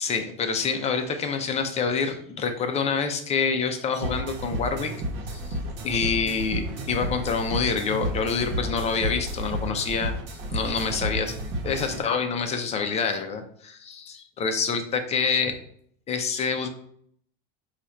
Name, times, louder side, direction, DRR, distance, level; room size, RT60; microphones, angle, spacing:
voice 1, 0.0-4.9 5.3-5.6 5.8-10.1 10.5-11.4 11.6-15.5 16.1-16.7, left 5 dB, 20° left, 6 dB, 0.5 m, -27 dB
sound 1, 4.0-12.0, equal, 55° right, 1.1 m, -32 dB
3.9 x 2.4 x 4.4 m, 0.64 s
supercardioid pair, 130°, 29 cm